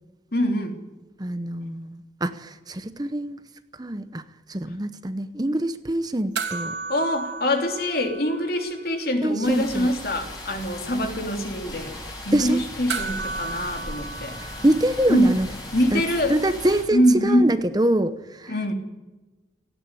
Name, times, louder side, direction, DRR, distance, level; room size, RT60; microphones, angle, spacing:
voice 1, 0.3-0.8 6.9-14.4 15.1-15.4 15.7-16.4 16.9-17.5 18.5-18.7, equal, 55° left, 4 dB, 3.2 m, -24 dB
voice 2, 1.2-3.4 3.8-4.2 4.5-6.8 9.2-9.9 12.3-12.6 14.4-15.5 15.9-16.0 16.3-18.7, right 1 dB, 20° right, 11 dB, 0.8 m, -25 dB
sound 1, 6.3-9.0 9.3-9.4 12.9-15.5 17.6-17.7, right 4 dB, 75° right, 2.9 m, -34 dB
sound 2, 9.4-16.8, left 1 dB, 20° left, 5.7 m, -37 dB
18.0 x 15.5 x 9.6 m, 1.1 s
head